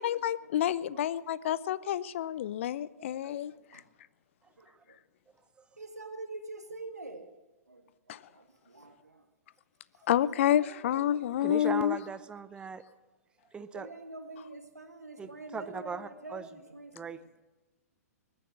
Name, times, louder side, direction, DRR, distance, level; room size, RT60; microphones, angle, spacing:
voice 1, 0.0-3.5 8.1-8.2 10.1-12.0, left 11 dB, 50° left, 0.6 m, -29 dB
voice 2, 3.0-3.8 4.6-4.7 5.8-7.3 7.7-7.8 8.4-9.2 10.2-11.6 13.7-17.1, right 2 dB, 85° right, 1.9 m, -46 dB
voice 3, 11.4-12.8 13.5-13.9 15.2-16.5 16.9-17.4, right 5 dB, 10° right, 0.7 m, -39 dB
21.0 x 9.4 x 6.5 m
figure-of-eight pair, 115°, 8 cm